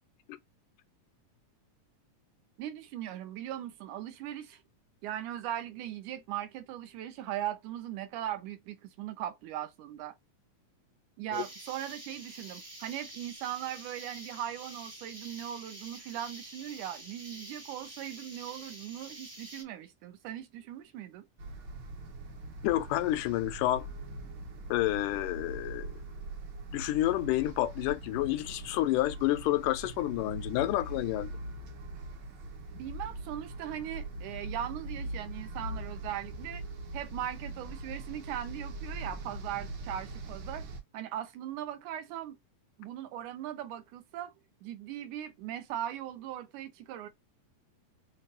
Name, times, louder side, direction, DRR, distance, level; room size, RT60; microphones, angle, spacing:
voice 1, 2.6-4.6 5.0-10.2 11.2-21.3 32.7-36.7 36.9-40.7 40.9-42.4 42.8-44.3 44.6-47.1, right 11 dB, 80° right, 2.1 m, -39 dB
sound 1, 11.3-19.6, right 1 dB, 40° right, 0.5 m, -48 dB
sound 2, 21.4-40.8, right 2 dB, 60° right, 1.4 m, -42 dB
voice 2, 22.6-23.9 24.7-25.9 26.7-31.3, left 15 dB, 80° left, 2.0 m, -29 dB
6.6 x 2.7 x 2.6 m
omnidirectional pair, 3.8 m